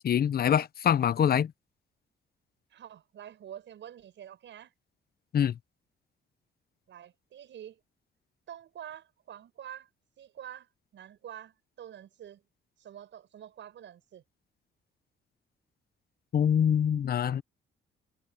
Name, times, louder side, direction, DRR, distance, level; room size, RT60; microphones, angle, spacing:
voice 1, 0.0-1.5 5.3-5.6 16.3-17.4, left 8 dB, 50° left, 0.8 m, -24 dB
voice 2, 2.7-4.7 6.9-7.8 8.5-9.9 10.2-12.4 12.8-14.2, right 10 dB, 70° right, 7.5 m, -47 dB
cardioid pair, 90°, 20 cm